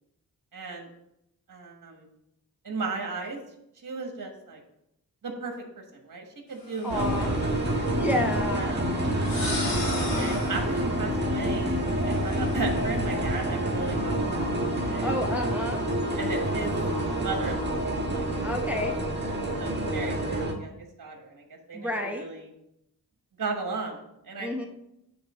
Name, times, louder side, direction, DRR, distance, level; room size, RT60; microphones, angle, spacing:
voice 1, 0.5-0.9 1.5-2.1 2.6-3.4 3.8-4.6 5.2-5.6 5.9-7.4 8.5-8.9 10.0-11.7 12.0-14.5 14.9-15.1 16.2-16.7 17.2-17.8 18.1-18.2 19.6-22.5 23.4-24.5, right 3 dB, 60° right, 2 dB, 1.5 m, -35 dB
sound 1, 6.6-7.9 9.0-10.8 12.1-13.5, left 2 dB, 75° left, 2.4 m, -37 dB
voice 2, 6.8-7.3 8.0-8.7 15.0-15.8 18.4-18.9 21.7-22.3 24.4-24.7, left 1 dB, 5° right, 2 dB, 0.8 m, -30 dB
sound 2, 6.9-20.5, right 1 dB, 30° right, 1.4 m, -28 dB
8.6 x 3.7 x 6.2 m, 0.82 s
wide cardioid pair, 90°, 37 cm